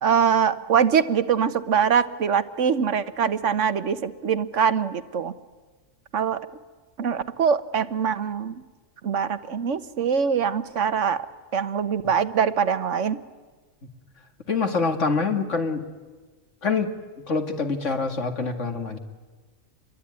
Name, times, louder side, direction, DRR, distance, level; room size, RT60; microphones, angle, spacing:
voice 1, 0.0-5.3 6.1-6.4 7.0-8.6 9.0-11.2 11.5-13.2, right 7 dB, 70° right, 13 dB, 1.4 m, -23 dB
voice 2, 14.5-15.9 16.6-16.9 17.3-19.0, left 4 dB, 70° left, 6 dB, 2.5 m, -25 dB
28.0 x 22.0 x 9.6 m, 1.3 s
omnidirectional pair, 1.3 m